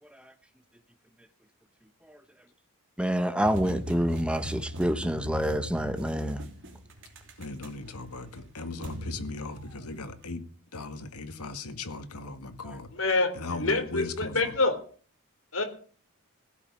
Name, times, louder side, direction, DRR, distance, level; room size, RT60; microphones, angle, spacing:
voice 1, 3.0-6.4 12.7-12.8, equal, 5° right, 1.0 m, -28 dB
sound 1, 3.4-10.3, equal, 55° right, 3.3 m, -39 dB
voice 2, 7.4-10.4 10.7-12.9 13.3-14.6, left 3 dB, 85° left, 1.9 m, -38 dB
voice 3, 12.9-14.8 15.5-15.6, left 3 dB, 60° left, 3.4 m, -26 dB
16.5 x 6.4 x 9.7 m
head